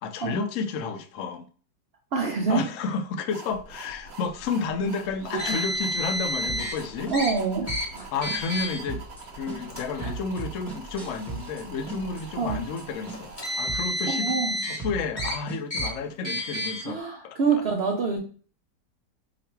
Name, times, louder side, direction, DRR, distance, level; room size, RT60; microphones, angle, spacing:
voice 1, 0.0-1.5 2.5-7.1 8.1-9.0 9.3-14.3 14.7-17.6, left 4 dB, 75° left, 0.7 m, -31 dB
voice 2, 2.1-2.6 5.3-5.6 7.1-7.7 7.9-8.1 10.0-10.1 12.4-12.6 14.1-14.6 16.8-18.2, right 4 dB, 70° right, 0.6 m, -26 dB
sound 1, 3.3-13.6, right 3 dB, 45° right, 1.0 m, -44 dB
Car, 5.4-6.7 7.1-7.3 7.7-7.8 8.2-8.8 9.6-9.8 10.8-10.9 13.1-14.8 15.2-15.3 15.7-15.9 16.2-16.8, equal, 30° left, 1.0 m, -30 dB
sound 2, 6.5-6.8 7.1-7.4 7.7-8.0 8.3-8.6 8.9-9.2 9.5-11.6 11.9-12.2 12.5-12.8 13.1-13.4 13.7-14.0 14.3-16.0, right 4 dB, ahead, 0.8 m, -36 dB
3.0 x 2.5 x 4.3 m
omnidirectional pair, 1.8 m